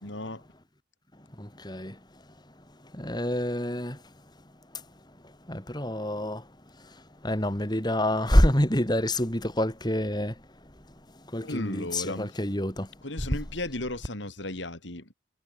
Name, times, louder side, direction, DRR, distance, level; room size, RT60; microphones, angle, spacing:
voice 1, 0.0-0.4 11.4-12.3 13.0-15.1, left 1 dB, 75° left, 5.0 m, -35 dB
voice 2, 1.4-2.0 2.9-4.0 5.5-6.4 7.2-10.3 11.3-12.9, left 1 dB, 20° left, 4.0 m, -26 dB
head